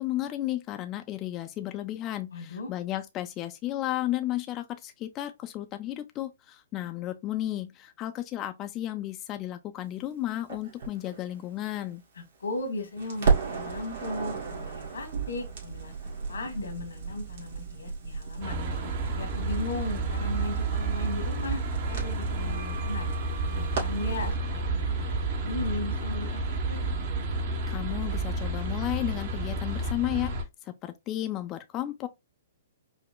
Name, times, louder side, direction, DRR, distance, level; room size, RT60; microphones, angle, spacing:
voice 1, 0.0-12.0 27.7-30.3 30.6-32.1, left 14 dB, 25° left, 0.3 m, -33 dB
voice 2, 2.3-2.7 12.1-18.6 19.2-23.1 23.5-25.0 25.3-26.8, left 2 dB, 90° left, 1.5 m, -37 dB
Crackle, 10.5-12.6 13.0-24.3, right 5 dB, 70° right, 2.0 m, -34 dB
sound 1, 18.4-30.4, right 2 dB, 45° right, 0.9 m, -30 dB
5.0 x 2.1 x 2.2 m
hypercardioid pair, 140°, 0 cm